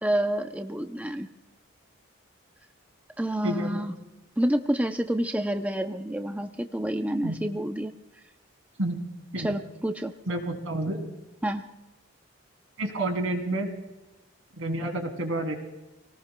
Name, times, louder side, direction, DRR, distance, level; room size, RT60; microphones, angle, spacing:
voice 1, 0.0-1.3 3.2-3.9 4.4-7.9 9.4-10.1 11.4-11.6, right 1 dB, 5° right, 6 dB, 0.5 m, -28 dB
voice 2, 3.4-3.8 7.2-7.4 8.8-9.0 9.3-9.5 10.3-11.1 12.8-13.7 14.6-15.5, right 1 dB, 80° right, 4 dB, 2.8 m, -29 dB
26.5 x 18.5 x 2.2 m, 1.0 s
head